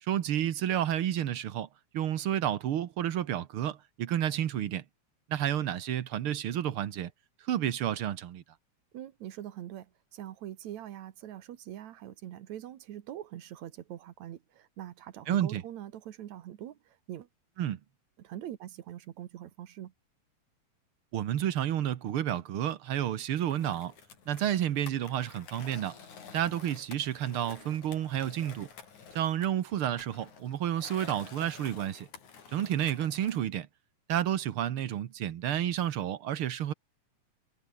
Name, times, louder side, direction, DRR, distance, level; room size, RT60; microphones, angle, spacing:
voice 1, 0.0-1.7 1.9-4.8 5.3-7.1 7.4-8.4 15.3-15.6 17.6-17.8 21.1-23.9 24.3-26.0 26.3-28.7 29.1-32.1 32.5-33.7 34.1-36.7, right 11 dB, 60° right, 1.7 m, -30 dB
voice 2, 8.9-17.3 18.2-19.9, right 11 dB, 75° right, 2.5 m, -43 dB
Skateboard, 23.5-33.5, left 6 dB, 80° left, 5.0 m, -51 dB
omnidirectional pair, 3.3 m